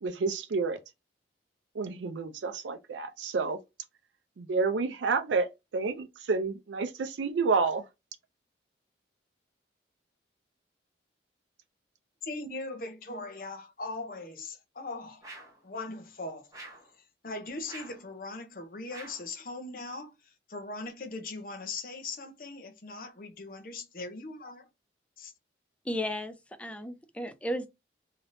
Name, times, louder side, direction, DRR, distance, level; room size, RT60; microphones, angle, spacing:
voice 1, 0.0-0.8 1.7-3.6 4.4-5.5 5.7-7.8, right 4 dB, 85° right, 0.4 m, -29 dB
voice 2, 12.2-15.3 15.6-16.5 17.2-24.7 25.2-25.3, left 3 dB, 50° left, 0.7 m, -40 dB
sound 1, 15.2-15.6 16.5-16.9 17.7-18.1 18.9-19.3, right 2 dB, 20° right, 0.9 m, -46 dB
voice 3, 25.8-27.7, equal, 5° left, 0.4 m, -34 dB
3.3 x 2.8 x 2.5 m
head